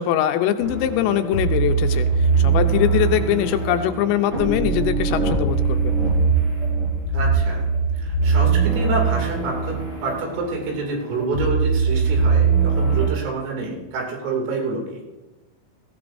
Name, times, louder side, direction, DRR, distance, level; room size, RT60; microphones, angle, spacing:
voice 1, 0.0-5.9, left 11 dB, 80° left, 7 dB, 3.2 m, -22 dB
sound 1, 0.6-13.1, right 5 dB, 25° right, 6.7 m, -21 dB
voice 2, 7.1-7.6 8.0-9.8 10.0-15.0, right 3 dB, 80° right, 0 dB, 5.3 m, -27 dB
18.5 x 16.0 x 2.7 m, 1.1 s
omnidirectional pair, 5.8 m